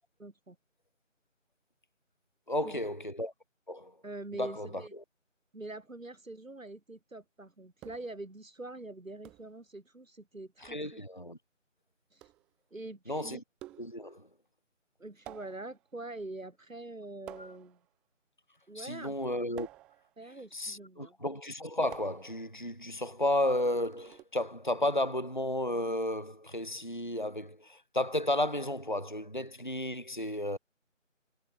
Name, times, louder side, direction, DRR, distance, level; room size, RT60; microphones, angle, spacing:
voice 1, 0.2-0.6 2.6-2.8 4.0-4.9 5.5-11.0 12.1-12.3 12.7-13.4 15.0-17.8 18.7-19.3 20.2-21.1, right 2 dB, 90° right, 3.0 m, -44 dB
voice 2, 2.5-3.3 3.7-3.9 4.4-5.0 10.6-11.4 13.1-13.4 13.8-14.3 17.4-17.5 18.8-19.7 20.5-30.6, left 1 dB, 40° left, 0.4 m, -33 dB
sound 1, 7.8-8.2 9.2-9.6 10.6-10.9 12.2-12.5 13.6-14.1 15.3-15.9 17.3-17.9 19.6-20.2 21.9-22.5 23.5-24.2, right 16 dB, ahead, 2.3 m, -51 dB
figure-of-eight pair, 170°, 39 cm